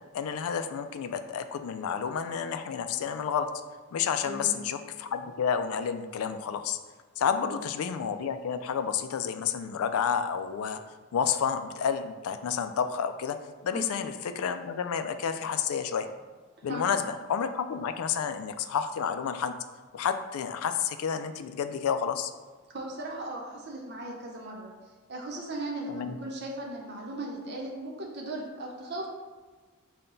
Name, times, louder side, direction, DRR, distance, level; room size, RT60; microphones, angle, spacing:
voice 1, 0.1-3.5 3.9-6.8 7.2-10.8 11.1-13.4 13.6-16.1 16.6-19.6 19.9-22.3 25.9-26.2, left 7 dB, 75° left, 9 dB, 0.3 m, -30 dB
voice 2, 4.2-4.5 7.4-7.5 13.7-13.9 16.7-16.9 22.7-24.7 25.1-29.1, right 1 dB, 50° right, -1 dB, 0.8 m, -37 dB
5.5 x 2.2 x 3.9 m, 1.3 s
head